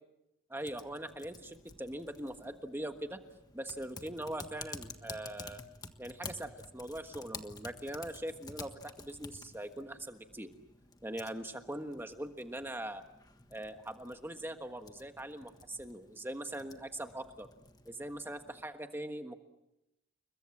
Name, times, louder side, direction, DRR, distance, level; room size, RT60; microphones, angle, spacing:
voice 1, 0.5-3.2 3.5-5.6 6.0-8.7 9.0-10.5 11.0-13.0 13.5-17.5 17.8-19.4, right 1 dB, 10° right, 7 dB, 1.4 m, -41 dB
Typing, 0.6-18.6, left 3 dB, 20° left, 1.5 m, -51 dB
29.5 x 22.0 x 7.3 m, 0.89 s
head